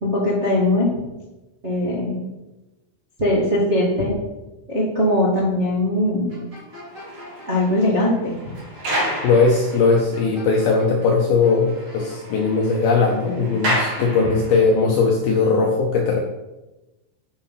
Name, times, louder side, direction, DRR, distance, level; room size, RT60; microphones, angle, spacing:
voice 1, 0.0-0.9 1.6-2.2 3.2-4.2 4.7-6.3 7.5-8.4, left 1 dB, 65° right, -7 dB, 0.6 m, -20 dB
sound 1, 6.3-7.7 9.7-11.1 11.4-12.2, left 1 dB, 20° right, 3.4 m, -42 dB
sound 2, 6.7-10.2 10.7-10.8 11.2-11.3 11.6-14.8, equal, 45° right, 2.3 m, -30 dB
voice 2, 9.2-16.2, left 4 dB, 80° left, 1 dB, 2.2 m, -19 dB
9.1 x 5.8 x 5.8 m, 1.1 s
omnidirectional pair, 5.5 m